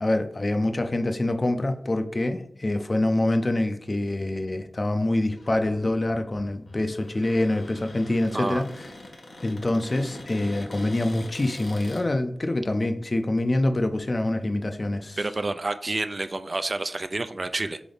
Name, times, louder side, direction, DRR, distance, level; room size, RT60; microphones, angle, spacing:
voice 1, 0.0-8.7 9.4-15.2, left 1 dB, 35° left, 8 dB, 0.4 m, -25 dB
Cupboard open or close, 5.3-12.0, left 2 dB, 60° left, 1.1 m, -43 dB
voice 2, 8.3-8.6 15.2-17.8, right 2 dB, 40° right, 10 dB, 0.3 m, -29 dB
3.7 x 3.5 x 3.9 m, 0.66 s
wide cardioid pair, 75°, 0 cm